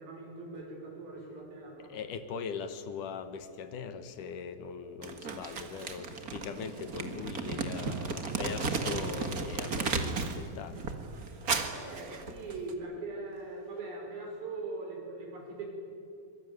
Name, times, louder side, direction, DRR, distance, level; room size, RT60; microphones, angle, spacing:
voice 1, 0.0-2.0 11.6-15.7, right 3 dB, 85° right, 1 dB, 7.2 m, -41 dB
voice 2, 1.8-10.8, left 6 dB, 65° left, 11 dB, 2.5 m, -40 dB
Crumpling crinkling, 5.0-10.4 10.7-12.7, right 4 dB, 40° right, 1.4 m, -34 dB
24.5 x 23.0 x 9.6 m, 2.5 s
omnidirectional pair, 4.2 m